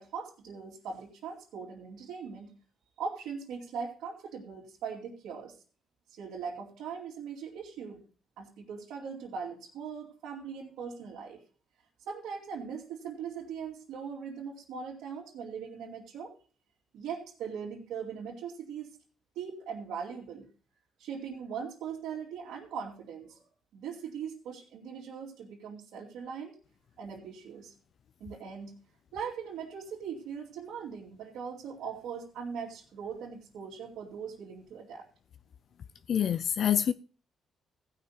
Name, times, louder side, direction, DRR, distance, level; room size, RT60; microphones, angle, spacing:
voice 1, 0.0-2.5 3.0-5.6 6.1-8.0 8.4-11.4 12.1-16.3 16.9-19.0 19.3-20.5 21.0-26.5 27.0-27.7 28.2-28.7 29.1-35.1, right 6 dB, 85° right, 2.5 m, -40 dB
voice 2, 36.1-36.9, left 9 dB, 60° left, 0.5 m, -26 dB
16.0 x 5.9 x 5.6 m
cardioid pair, 90°, 0 cm